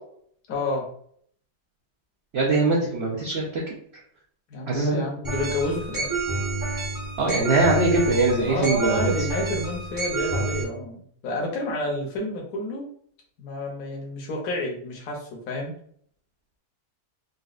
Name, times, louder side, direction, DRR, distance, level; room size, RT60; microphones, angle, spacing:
voice 1, 0.5-0.9 4.5-6.1 8.5-12.8 13.4-15.7, left 1 dB, 65° left, -1 dB, 1.1 m, -30 dB
voice 2, 2.3-3.5 4.7-5.0 7.2-9.1, right 2 dB, 65° right, -3 dB, 0.6 m, -22 dB
sound 1, 5.2-10.6, right 3 dB, 20° right, 0.6 m, -29 dB
4.0 x 2.2 x 2.4 m, 0.63 s
omnidirectional pair, 1.8 m